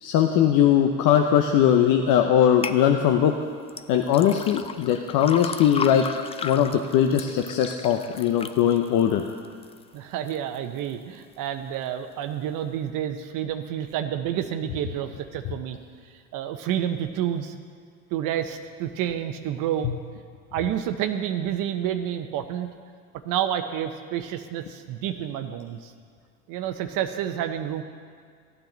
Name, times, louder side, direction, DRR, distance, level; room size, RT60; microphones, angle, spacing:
voice 1, 0.0-3.3 3.9-6.0 6.4-9.2 19.8-19.9, left 9 dB, 65° left, 4 dB, 0.8 m, -20 dB
sound 1, 2.6-2.8 3.7-9.8 10.3-10.8 11.3-11.4, left 6 dB, 20° left, 0.3 m, -35 dB
voice 2, 9.9-15.8 16.3-17.5 18.1-19.9 20.5-22.7 23.2-25.9 26.5-27.8, right 10 dB, 65° right, 7 dB, 0.8 m, -29 dB
15.0 x 8.9 x 4.0 m, 2.1 s
supercardioid pair, 105°, 35 cm